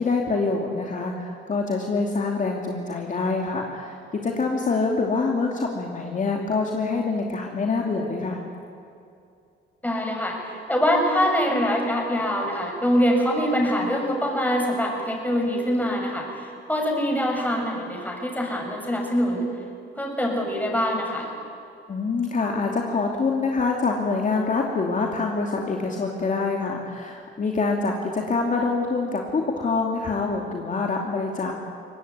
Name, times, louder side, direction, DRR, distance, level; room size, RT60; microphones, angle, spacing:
voice 1, 0.0-8.4 21.9-31.5, left 3 dB, 40° left, 0 dB, 2.8 m, -25 dB
voice 2, 9.8-19.5 20.0-21.3, equal, 10° left, 1 dB, 6.8 m, -24 dB
23.5 x 19.0 x 9.5 m, 2.5 s
cardioid pair, 90°, 20 cm